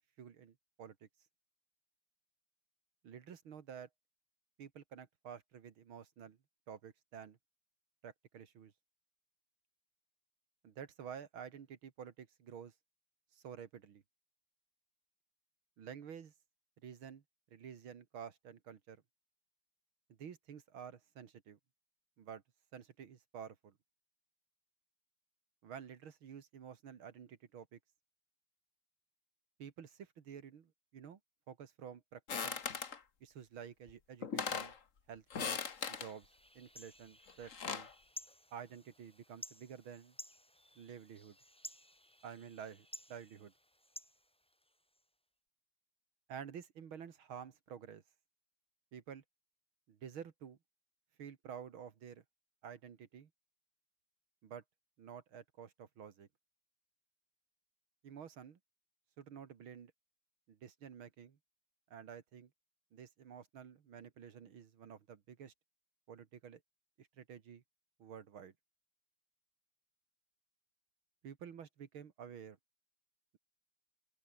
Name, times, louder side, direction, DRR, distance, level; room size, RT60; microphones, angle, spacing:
voice 1, 0.2-1.1 3.0-3.9 4.6-6.4 6.7-7.4 8.0-8.7 10.6-12.7 13.3-14.0 15.8-16.3 16.8-17.2 17.5-19.0 20.2-21.6 22.2-22.4 22.7-23.8 25.6-27.8 29.6-31.2 31.5-32.6 33.2-34.7 35.1-35.6 35.9-36.3 36.5-37.9 38.5-40.2 40.8-41.4 42.2-43.5 46.3-48.0 48.9-49.2 49.9-50.6 51.2-52.2 52.6-53.3 54.4-54.6 55.0-56.3 58.0-58.6 59.2-59.9 60.5-61.4 61.9-62.5 62.9-65.5 66.1-66.6 67.0-67.6 68.0-68.5 71.2-72.6, right 7 dB, 75° right, 2.6 m, -50 dB
sound 1, 32.3-33.0 33.9-34.0 34.2-34.8 35.3-36.1 37.3-37.9, left 6 dB, 40° left, 1.7 m, -39 dB
sound 2, 35.6-45.0, equal, 5° left, 2.0 m, -55 dB
open air
omnidirectional pair, 2.3 m